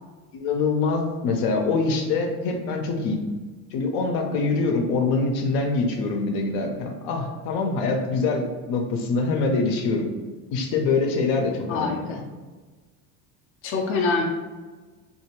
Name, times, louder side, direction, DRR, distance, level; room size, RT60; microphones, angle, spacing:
voice 1, 0.3-3.2 3.7-10.1 10.5-12.1, left 3 dB, 70° left, 3 dB, 0.7 m, -24 dB
voice 2, 11.7-12.2 13.6-14.2, left 4 dB, 30° left, 0 dB, 0.5 m, -25 dB
2.8 x 2.6 x 3.0 m, 1.3 s
supercardioid pair, 100°, 42 cm